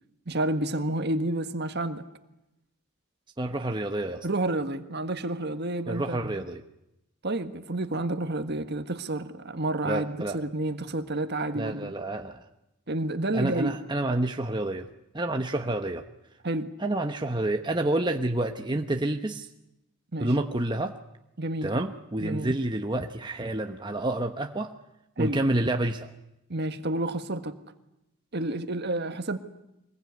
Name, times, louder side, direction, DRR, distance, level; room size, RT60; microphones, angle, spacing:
voice 1, 0.3-2.0 4.2-6.3 7.2-11.9 12.9-13.7 16.4-16.7 20.1-20.3 21.4-21.7 22.2-22.5 25.2-25.4 26.5-27.6 28.3-29.4, right 2 dB, 50° right, 9 dB, 1.6 m, -30 dB
voice 2, 3.4-4.3 5.9-6.6 9.9-10.4 11.5-12.4 13.3-14.9 15.1-16.0 16.8-19.5 20.2-20.9 21.6-24.7 25.2-26.1, right 1 dB, 20° right, 4 dB, 1.0 m, -28 dB
24.0 x 21.0 x 9.5 m, 0.88 s
head